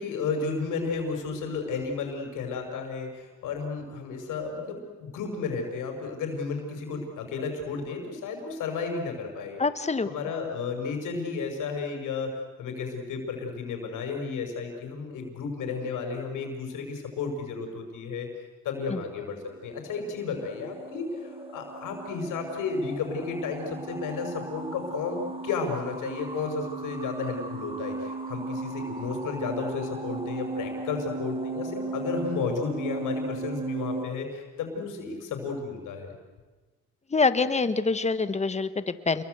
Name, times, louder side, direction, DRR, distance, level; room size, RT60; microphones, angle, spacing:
voice 1, 0.0-9.6 10.1-12.3 12.6-18.3 18.6-19.4 19.6-36.1, left 4 dB, 85° left, 4 dB, 6.0 m, -33 dB
voice 2, 9.6-10.1 18.9-19.0 37.1-39.2, left 4 dB, 20° left, 12 dB, 1.4 m, -25 dB
sound 1, 19.4-34.1, right 3 dB, 20° right, 2.9 m, -36 dB
29.0 x 22.0 x 8.2 m, 1.3 s
cardioid pair, 105°, 30 cm